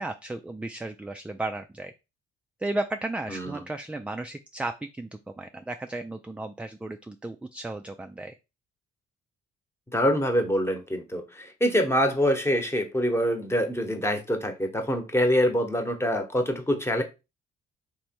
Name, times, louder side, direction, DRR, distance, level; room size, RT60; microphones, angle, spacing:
voice 1, 0.0-1.9 2.6-5.1 5.4-8.4, right 2 dB, 5° right, 6 dB, 0.3 m, -34 dB
voice 2, 3.3-3.6 9.9-17.0, equal, 10° left, 5 dB, 1.0 m, -25 dB
3.2 x 3.0 x 4.5 m, 0.27 s
cardioid pair, 90°, 20 cm